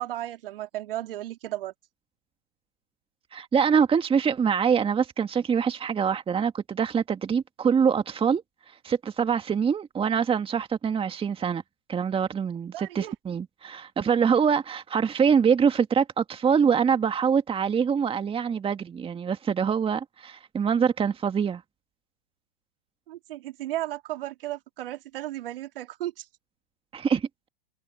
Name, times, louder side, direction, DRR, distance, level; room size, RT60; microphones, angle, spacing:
voice 1, 0.0-1.7 12.7-13.1 23.1-26.3, right 14 dB, 70° right, 3.4 m, -34 dB
voice 2, 3.3-8.4 8.8-11.6 11.9-21.6 26.9-27.3, right 7 dB, 20° right, 1.9 m, -24 dB
hypercardioid pair, 110°, 29 cm